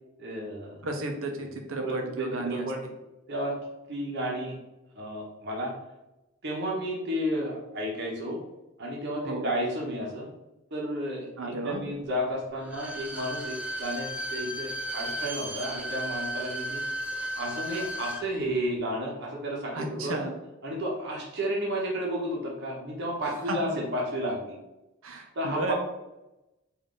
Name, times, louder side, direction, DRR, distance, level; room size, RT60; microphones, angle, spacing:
voice 1, 0.2-0.9 1.8-2.8 3.3-3.6 3.9-4.6 4.9-5.7 6.4-8.4 8.8-10.3 10.7-16.8 17.3-20.1 20.6-24.6 25.3-25.7, equal, 55° right, -3 dB, 0.9 m, -32 dB
voice 2, 0.8-2.7 9.2-9.5 11.4-11.8 19.7-20.3 23.2-23.6 25.0-25.7, right 2 dB, 90° right, 3 dB, 0.7 m, -33 dB
Bowed string instrument, 12.6-18.2 18.6-18.7, equal, 5° right, 0.5 m, -34 dB
3.7 x 2.6 x 3.7 m, 0.96 s
head